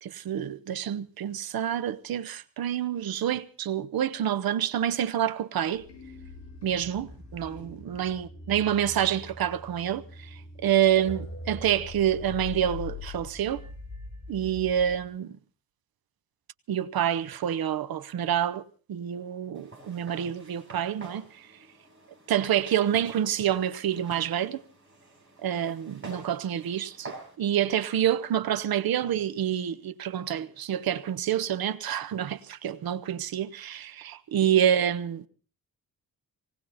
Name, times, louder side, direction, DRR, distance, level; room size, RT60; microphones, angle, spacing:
voice 1, 0.0-5.8 6.6-10.3 10.6-13.6 14.3-15.4 16.7-18.6 18.9-21.5 22.3-24.6 25.4-35.2, right 10 dB, 80° right, 0.8 m, -27 dB
sound 1, 5.7-15.0, left 3 dB, 45° left, 7.9 m, -42 dB
Walk footsteps, 19.5-27.4, right 2 dB, 35° right, 7.0 m, -48 dB
19.0 x 18.5 x 4.1 m
wide cardioid pair, 170°, 36 cm